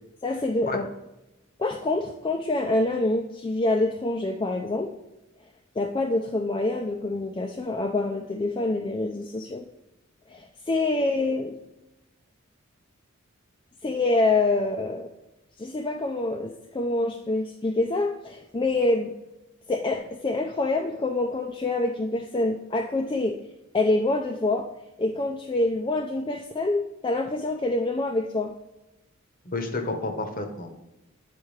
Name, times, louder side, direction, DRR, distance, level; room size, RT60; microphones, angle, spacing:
voice 1, 0.2-0.9 1.6-4.9 5.8-9.7 10.3-11.6 13.8-15.1 15.6-19.1 19.7-23.4 23.7-24.7 25.0-28.5, left 2 dB, 20° left, 2 dB, 0.3 m, -26 dB
voice 2, 29.4-30.7, left 2 dB, 40° left, 6 dB, 0.8 m, -30 dB
8.6 x 4.6 x 3.2 m, 0.95 s
head